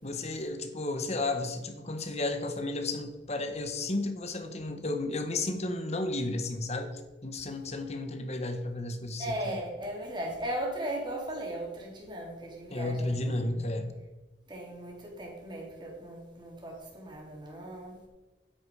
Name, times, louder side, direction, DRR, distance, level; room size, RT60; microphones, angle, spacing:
voice 1, 0.0-9.6 12.7-13.9, left 2 dB, 40° left, 7 dB, 1.7 m, -33 dB
voice 2, 9.2-13.6 14.5-18.0, right 1 dB, 25° right, -2 dB, 4.0 m, -37 dB
13.0 x 10.5 x 5.1 m, 1.2 s
head